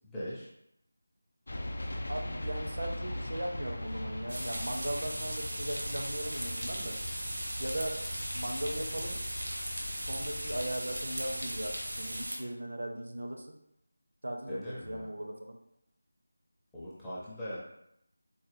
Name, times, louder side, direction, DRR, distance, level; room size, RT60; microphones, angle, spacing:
voice 1, 0.1-0.5 14.5-15.1 16.7-17.6, equal, 5° left, -11 dB, 0.5 m, -40 dB
sound 1, 1.5-12.3, left 1 dB, 65° left, 0.4 m, -40 dB
voice 2, 2.1-6.9 7.6-9.2 10.0-13.6 14.2-15.6, right 1 dB, 70° right, 2 dB, 0.6 m, -38 dB
sound 2, 4.3-12.4, right 1 dB, 90° right, 0.9 m, -38 dB
3.9 x 2.2 x 3.0 m, 0.78 s
figure-of-eight pair, 175°, 0 cm